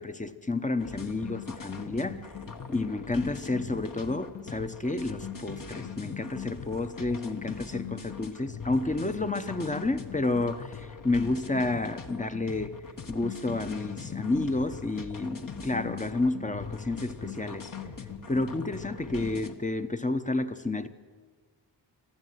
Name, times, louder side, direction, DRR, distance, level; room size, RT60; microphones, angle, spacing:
voice 1, 0.0-2.2 2.7-12.7 13.1-17.7 18.3-20.9, left 2 dB, 15° left, 0.9 m, -30 dB
sound 1, 0.8-19.6, left 6 dB, 45° left, 1.4 m, -40 dB
21.5 x 14.0 x 9.4 m
wide cardioid pair, 120°, 44 cm